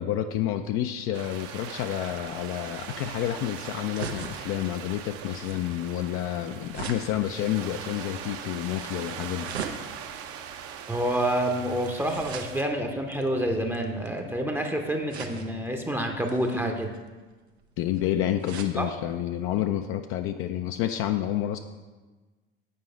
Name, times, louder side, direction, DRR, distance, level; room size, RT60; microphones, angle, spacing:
voice 1, 0.0-9.6 17.8-21.6, left 11 dB, 45° left, 7 dB, 0.4 m, -29 dB
sound 1, 1.1-12.6, right 8 dB, 45° right, 0.7 m, -41 dB
sound 2, 3.9-14.4 15.1-15.7 16.2-18.8 19.3-19.4 19.6-19.7, right 5 dB, 85° right, 0.7 m, -42 dB
voice 2, 10.9-16.9 18.7-18.8, right 1 dB, 5° right, 2 dB, 0.7 m, -28 dB
7.9 x 4.7 x 5.0 m, 1.3 s
hypercardioid pair, 75°, 31 cm